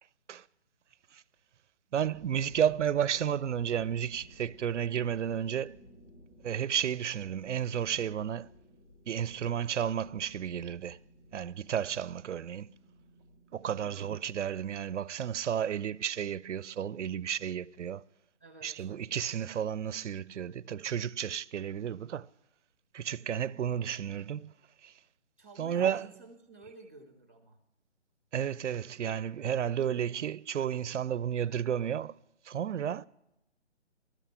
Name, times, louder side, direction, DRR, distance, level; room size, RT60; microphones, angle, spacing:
voice 1, 1.9-5.8 6.4-8.5 9.1-11.0 11.3-12.7 13.5-18.0 18.6-22.3 22.9-24.5 24.8-24.9 25.6-26.1 28.3-32.1 32.5-33.1, right 9 dB, 80° right, 0.5 m, -32 dB
sound 1, 2.0-14.6, left 1 dB, 75° left, 4.9 m, -57 dB
voice 2, 13.6-14.1 18.4-18.9 25.4-27.6, right 2 dB, 10° right, 0.6 m, -53 dB
13.0 x 9.1 x 5.6 m
hypercardioid pair, 165°, 35 cm